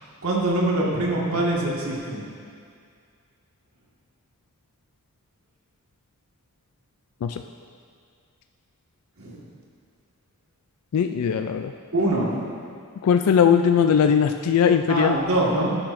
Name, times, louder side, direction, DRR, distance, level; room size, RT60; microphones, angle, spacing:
voice 1, 0.2-2.3 9.2-9.4 11.9-12.4 14.9-15.8, right 1 dB, 70° right, -4 dB, 1.8 m, -23 dB
voice 2, 10.9-11.7 13.0-15.2, left 7 dB, 80° left, 7 dB, 0.3 m, -19 dB
13.5 x 8.8 x 2.6 m, 2.2 s
head